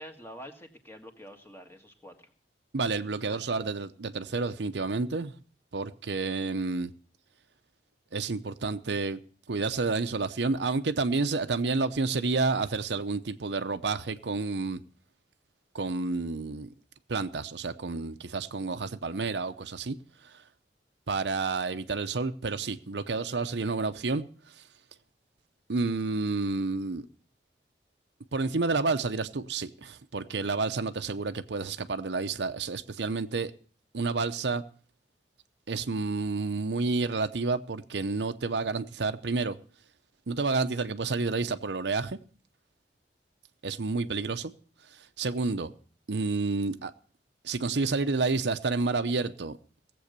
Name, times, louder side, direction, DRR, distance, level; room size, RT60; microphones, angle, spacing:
voice 1, 0.0-2.3 3.3-3.5, equal, 15° left, 1.7 m, -47 dB
voice 2, 2.7-5.3 5.7-6.9 8.1-9.2 9.5-14.8 15.7-16.7 17.1-20.0 20.2-20.4 21.1-24.6 25.7-27.1 28.3-33.5 33.9-34.6 35.7-39.6 40.3-42.2 43.6-44.5 44.9-45.7 46.1-46.9 47.4-49.6, right 3 dB, 75° right, 0.7 m, -30 dB
17.5 x 7.8 x 6.6 m
head